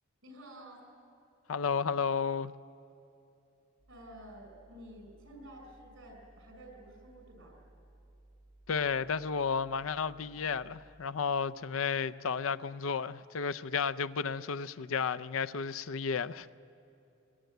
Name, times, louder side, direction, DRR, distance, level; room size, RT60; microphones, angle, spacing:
voice 1, 0.2-0.8 3.9-7.6, right 1 dB, 70° right, 5.8 m, -51 dB
voice 2, 1.5-2.5 8.7-16.5, left 6 dB, 75° left, 0.5 m, -32 dB
sound 1, 3.8-11.0, right 1 dB, ahead, 6.4 m, -60 dB
21.5 x 21.5 x 9.3 m
head